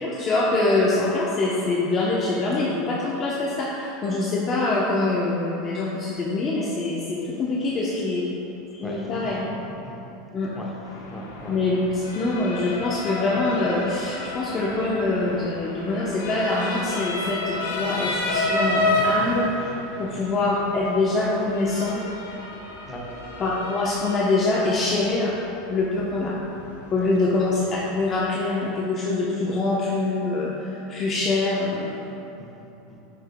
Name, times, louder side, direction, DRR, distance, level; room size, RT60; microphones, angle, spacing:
voice 1, 0.0-8.2 8.7-9.5 10.3-10.5 11.5-19.7 20.0-22.0 23.4-25.4 25.7-26.3 26.9-32.1, left 2 dB, 35° left, -5 dB, 0.8 m, -24 dB
voice 2, 8.8-9.5 9.8-10.0 10.5-11.6 19.9-20.1 22.9-23.1 27.0-27.1 32.4-33.0, equal, 15° left, -3 dB, 1.4 m, -40 dB
Motor vehicle (road) / Siren, 10.8-28.2, left 1 dB, 90° left, 1.0 m, -31 dB
10.5 x 6.2 x 2.2 m, 2.9 s
supercardioid pair, 120°, 0 cm